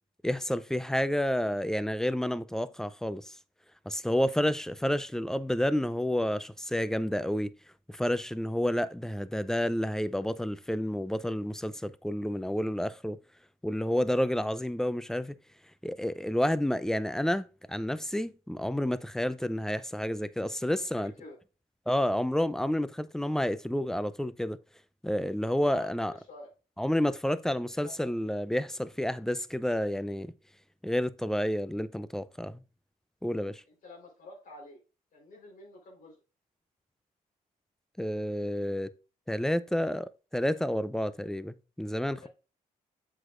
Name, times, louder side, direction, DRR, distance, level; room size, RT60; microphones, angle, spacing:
voice 1, 0.2-3.3 3.9-7.5 7.9-13.2 13.6-15.4 15.8-21.1 21.9-24.6 25.0-26.1 26.8-30.3 30.8-32.6 33.2-33.6 38.0-38.9 39.3-42.3, left 1 dB, 5° left, 0.5 m, -30 dB
voice 2, 20.8-21.4 25.6-26.5 27.5-28.1 33.7-34.8 35.1-36.2 42.2-42.3, left 2 dB, 65° left, 4.0 m, -49 dB
7.8 x 6.2 x 2.5 m
cardioid pair, 90°, 15 cm